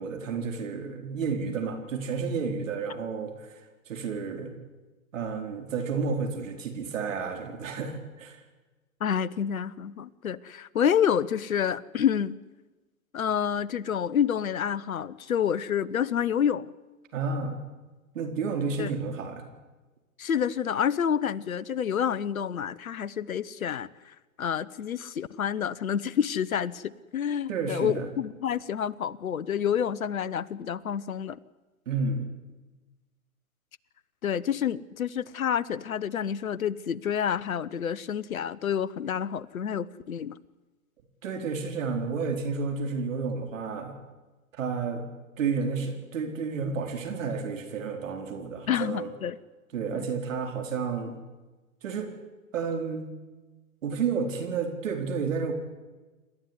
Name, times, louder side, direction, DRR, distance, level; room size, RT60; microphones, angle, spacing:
voice 1, 0.0-4.5 5.1-8.4 17.1-17.6 18.1-19.4 27.5-28.1 31.9-32.3 41.2-43.9 44.5-45.0 45.4-49.1 49.7-51.2 51.8-52.1 52.5-53.1 53.8-55.5, right 5 dB, 65° right, 5 dB, 4.3 m, -31 dB
voice 2, 9.0-12.4 13.1-16.7 18.8-18.9 20.2-23.9 24.4-31.4 34.2-40.3 48.7-49.4 49.9-50.1, left 8 dB, 80° left, 17 dB, 1.1 m, -28 dB
28.0 x 13.0 x 9.8 m, 1.2 s
hypercardioid pair, 120°, 42 cm